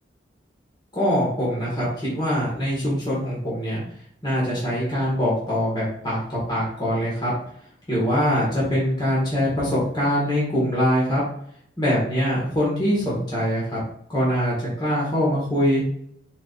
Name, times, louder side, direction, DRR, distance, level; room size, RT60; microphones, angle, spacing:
voice 1, 0.9-3.8 4.2-7.3 7.9-11.2 11.8-13.8 14.1-15.9, equal, 25° left, -7 dB, 1.6 m, -23 dB
4.8 x 4.1 x 2.4 m, 0.66 s
head